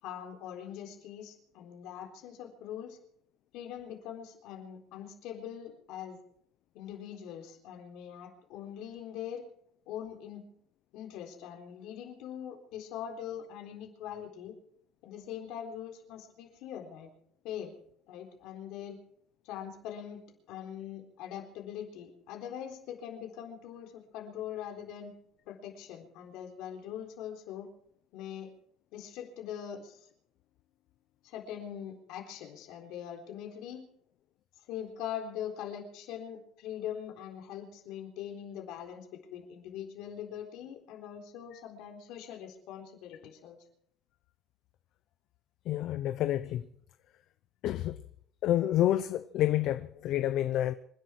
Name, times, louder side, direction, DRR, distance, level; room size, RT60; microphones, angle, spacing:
voice 1, 0.0-3.0 3.5-6.2 6.7-9.4 9.9-10.4 10.9-14.5 15.0-17.1 17.4-17.7 18.1-19.0 19.5-20.2 20.5-25.1 25.5-27.7 28.1-28.5 28.9-30.1 31.2-33.8 34.7-43.6, left 9 dB, 70° left, 3.9 m, -42 dB
voice 2, 45.7-46.6 47.6-48.0 48.4-50.7, left 13 dB, 55° left, 0.7 m, -28 dB
27.0 x 10.5 x 4.6 m
cardioid pair, 150°, 0 cm